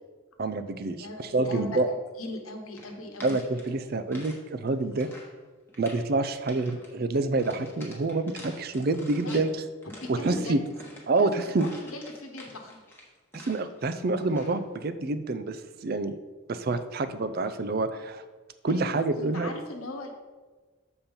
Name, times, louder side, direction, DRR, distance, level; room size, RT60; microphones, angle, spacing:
voice 1, 0.4-1.9 3.2-5.1 5.8-9.5 10.1-10.6 11.1-11.7 13.3-16.2 16.5-18.2 18.6-19.5, right 3 dB, 45° right, 11 dB, 0.4 m, -27 dB
voice 2, 1.0-3.3 9.2-9.4 9.8-10.6 11.2-11.3 11.6-12.8 18.7-20.1, left 2 dB, 85° left, 4 dB, 1.1 m, -39 dB
sound 1, 2.7-4.4 4.7-5.4 5.7-6.1 6.5-6.9 7.4-9.5 9.8-13.8 14.2-14.6, left 1 dB, 10° left, 1.1 m, -48 dB
7.0 x 4.4 x 5.2 m, 1.3 s
head